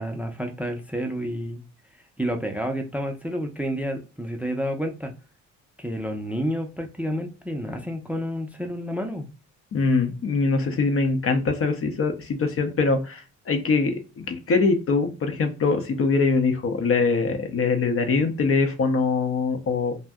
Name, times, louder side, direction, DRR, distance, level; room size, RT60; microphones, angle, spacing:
voice 1, 0.0-1.6 2.2-5.1 5.8-9.3, equal, 5° right, 4 dB, 0.5 m, -29 dB
voice 2, 9.7-20.0, left 4 dB, 45° left, 6 dB, 0.7 m, -23 dB
2.6 x 2.1 x 3.4 m, 0.33 s
cardioid pair, 90°, 30 cm